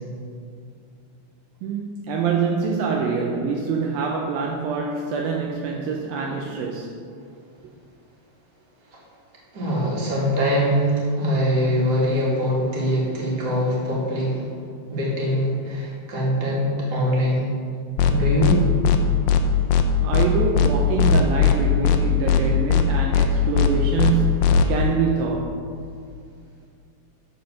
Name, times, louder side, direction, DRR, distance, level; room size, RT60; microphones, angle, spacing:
voice 1, 1.6-6.9 20.0-25.6, right 5 dB, 75° right, 1 dB, 2.4 m, -25 dB
voice 2, 9.5-14.4 14.9-17.5 18.1-18.6, equal, 30° right, -6 dB, 2.6 m, -23 dB
sound 1, 18.0-18.1 18.4-18.6 18.8-19.0 19.3-19.4 19.7-19.8 20.1-20.3 20.5-20.7 21.0-21.6 21.8-22.0 22.3-22.4 22.7-22.8 23.1-23.3 23.5-23.7 24.0-24.1 24.4-24.6, left 8 dB, 80° left, 2.0 m, -17 dB
13.5 x 4.8 x 6.3 m, 2.3 s
omnidirectional pair, 4.4 m